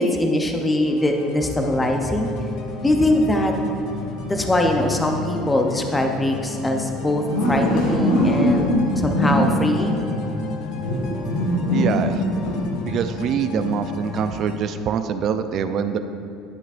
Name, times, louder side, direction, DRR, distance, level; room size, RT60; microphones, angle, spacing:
voice 1, 0.0-2.3 2.8-3.5 4.2-7.2 7.5-8.7 8.9-10.1, left 1 dB, 10° left, 3 dB, 0.6 m, -22 dB
sound 1, 0.9-14.6, left 4 dB, 60° left, 0.9 m, -37 dB
sound 2, 1.6-14.7, left 1 dB, 85° left, 1.8 m, -25 dB
voice 2, 11.7-12.2 12.9-16.0, right 7 dB, 40° right, 10 dB, 0.3 m, -24 dB
10.5 x 7.7 x 2.5 m, 2.6 s
cardioid pair, 150°, 0 cm